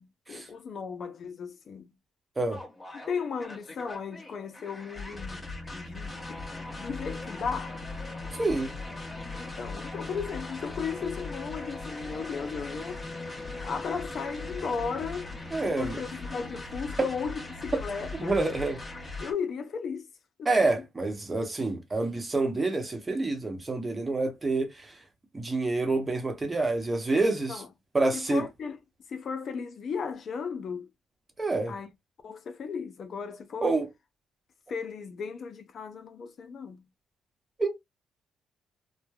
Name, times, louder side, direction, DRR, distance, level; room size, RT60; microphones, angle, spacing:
voice 1, 0.0-1.9 2.9-6.5 6.8-7.8 9.3-13.0 13.6-15.3 15.6-18.4 19.2-20.1 20.4-20.8 27.5-27.7 28.1-28.8 29.1-30.9 31.7-31.9 32.2-33.8 34.7-36.8, left 5 dB, 55° left, 0.5 m, -35 dB
sound 1, 2.5-19.3, left 2 dB, 25° left, 1.1 m, -39 dB
voice 2, 8.4-8.7 15.5-16.0 18.2-18.8 20.5-24.9 25.3-27.6 27.9-28.4 31.4-31.7 33.6-33.9 37.6-37.8, right 2 dB, 25° right, 0.9 m, -27 dB
3.1 x 2.1 x 2.3 m
cardioid pair, 90°, 0 cm